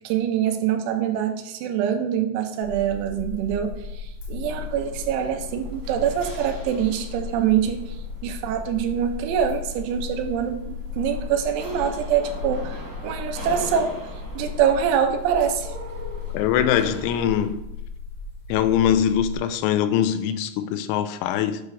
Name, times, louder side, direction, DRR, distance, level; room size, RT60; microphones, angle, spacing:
voice 1, 0.0-8.0 8.2-14.0 14.4-15.7, right 8 dB, 90° right, 3.1 m, -24 dB
sound 1, 2.6-19.4, left 5 dB, 70° left, 2.2 m, -36 dB
sound 2, 4.4-17.5, right 1 dB, 40° right, 1.2 m, -43 dB
voice 2, 16.3-17.6 18.5-21.6, left 9 dB, 85° left, 3.0 m, -22 dB
8.6 x 3.2 x 6.1 m
omnidirectional pair, 5.5 m